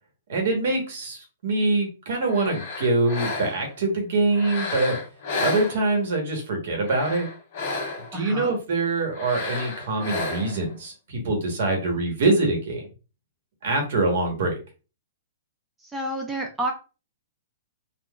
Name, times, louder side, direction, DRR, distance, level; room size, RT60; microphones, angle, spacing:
voice 1, 0.3-5.0 5.4-7.3 8.1-12.9 13.6-14.6, right 2 dB, 60° right, 2 dB, 1.1 m, -24 dB
sound 1, 2.3-3.8 4.3-6.2 6.7-8.2 9.1-10.7, left 3 dB, 45° left, 0.8 m, -32 dB
voice 2, 8.1-8.5 15.8-16.7, right 1 dB, 10° right, 2 dB, 0.4 m, -29 dB
3.6 x 2.3 x 2.3 m, 0.33 s
hypercardioid pair, 160°, 0 cm